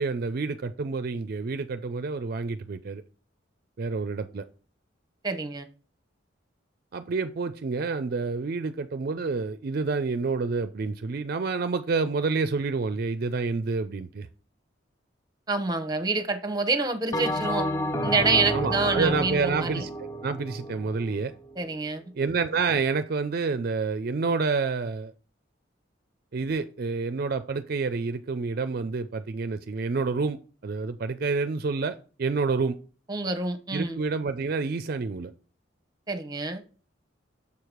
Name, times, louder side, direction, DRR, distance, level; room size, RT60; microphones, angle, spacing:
voice 1, 0.0-3.0 3.8-4.4 6.9-14.3 18.5-21.3 22.1-25.1 26.3-32.8 33.7-35.3, right 4 dB, 55° right, 0.4 m, -28 dB
voice 2, 5.2-5.7 15.5-17.7 18.0-19.8 21.6-22.0 33.1-34.0 36.1-36.6, right 3 dB, 20° right, 0.8 m, -27 dB
Bell, 17.1-21.7, equal, 15° left, 0.7 m, -31 dB
7.0 x 4.7 x 5.0 m
head